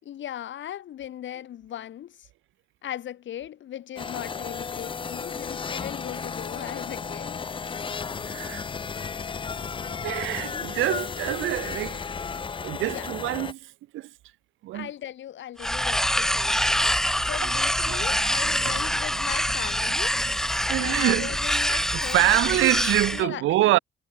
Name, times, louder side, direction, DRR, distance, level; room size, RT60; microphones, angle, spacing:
voice 1, 0.0-2.3 2.8-7.4 12.9-13.1 14.7-20.4 20.7-22.4 23.1-23.8, left 11 dB, 70° left, 4.0 m, -38 dB
sound 1, 4.0-13.5, left 5 dB, 25° left, 0.5 m, -34 dB
voice 2, 8.2-8.7 9.8-12.0 12.6-14.1 14.6-14.9 16.7-16.8 17.4-17.5 17.9-18.9 20.6-21.3 21.7-23.8, right 16 dB, 85° right, 1.3 m, -26 dB
sound 2, 15.6-23.2, equal, ahead, 0.8 m, -25 dB
cardioid pair, 90°, 20 cm